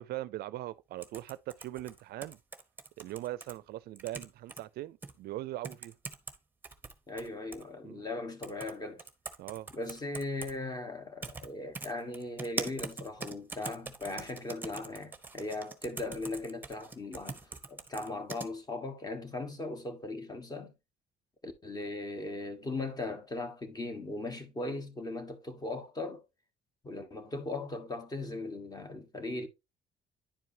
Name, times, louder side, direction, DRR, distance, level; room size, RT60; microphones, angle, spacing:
voice 1, 0.0-2.4 3.0-5.9 7.8-8.1 9.4-9.7, right 15 dB, 70° right, 0.4 m, -40 dB
sound 1, 1.0-3.5 4.0-4.6 5.0-5.1 5.6-6.4 6.6-7.6 8.4-8.7 9.0-10.5 11.2-11.5 11.7-18.5, right 3 dB, 10° right, 0.9 m, -42 dB
voice 2, 7.1-9.0 9.7-17.4 17.7-20.7 21.4-26.2 26.8-29.5, left 2 dB, 20° left, 1.3 m, -38 dB
10.0 x 4.6 x 2.7 m
cardioid pair, 110°, 17 cm